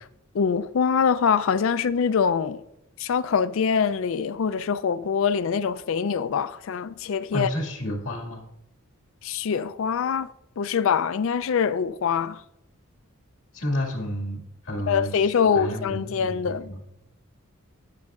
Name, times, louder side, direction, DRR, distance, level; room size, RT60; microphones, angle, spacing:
voice 1, 0.3-2.6 3.0-7.5 9.2-12.4 14.9-16.7, left 6 dB, 65° left, 0.4 m, -24 dB
voice 2, 7.3-8.4 13.5-16.8, equal, 80° left, 1.9 m, -31 dB
16.0 x 6.3 x 2.4 m
head